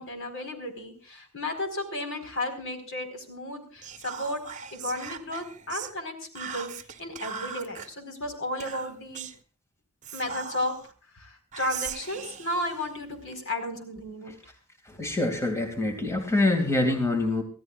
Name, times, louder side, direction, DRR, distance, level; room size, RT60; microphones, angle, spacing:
voice 1, 0.0-4.4 4.7-9.3 10.1-10.8 11.1-14.5 15.0-15.1, left 1 dB, 60° left, 6 dB, 4.5 m, -34 dB
Whispering, 3.8-5.9 6.4-7.9 8.6-9.4 10.0-10.9 11.5-13.4, right 7 dB, 35° right, 1.2 m, -39 dB
voice 2, 14.8-17.4, left 2 dB, 15° left, 4 dB, 2.4 m, -25 dB
25.5 x 16.0 x 2.4 m, 0.38 s
head